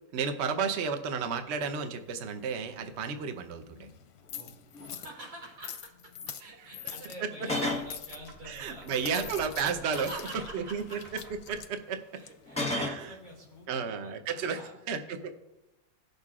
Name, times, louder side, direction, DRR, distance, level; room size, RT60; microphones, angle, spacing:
voice 1, 0.1-3.9 6.4-6.7 8.5-10.3 10.5-11.0 11.5-12.0 12.7-13.1 13.7-14.6 14.9-15.3, right 6 dB, 60° right, 7 dB, 0.7 m, -32 dB
sound 1, 1.6-13.7, left 9 dB, 65° left, 1.0 m, -47 dB
sound 2, 4.3-4.4 4.7-5.0 7.4-7.9 9.1-9.6 12.5-13.1, left 2 dB, 5° left, 0.9 m, -32 dB
voice 2, 4.9-6.1 6.4-8.9 9.8-11.0 12.1-14.7, right 1 dB, 80° right, -2 dB, 3.1 m, -47 dB
sound 3, 7.7-11.8, right 1 dB, 35° right, 2.8 m, -50 dB
18.0 x 6.6 x 2.4 m, 0.96 s
omnidirectional pair, 2.0 m